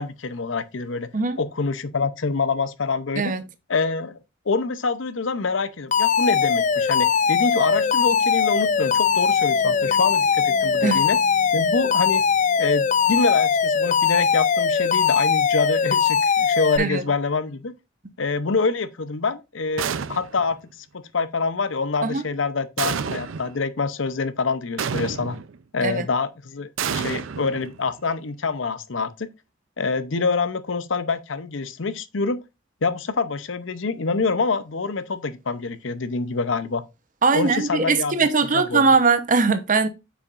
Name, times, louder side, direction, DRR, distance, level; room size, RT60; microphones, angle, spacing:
voice 1, 0.0-1.1 1.4-3.3 3.7-4.2 4.5-11.2 11.5-12.2 12.6-17.7 18.2-20.9 21.1-25.4 25.7-29.3 29.8-32.4 32.8-36.8 37.3-38.1 38.5-38.8, left 4 dB, 70° left, 0.7 m, -26 dB
sound 1, 5.7-14.8, equal, ahead, 2.0 m, -48 dB
Alarm, 5.9-16.8, left 6 dB, 40° left, 0.4 m, -20 dB
voice 2, 16.8-17.1 22.0-22.3 25.8-26.1 37.2-39.9, right 4 dB, 40° right, 0.9 m, -20 dB
sound 2, 19.8-20.5 22.8-23.6 24.8-25.6 26.8-28.0, right 7 dB, 85° right, 0.5 m, -29 dB
8.3 x 5.8 x 2.5 m
head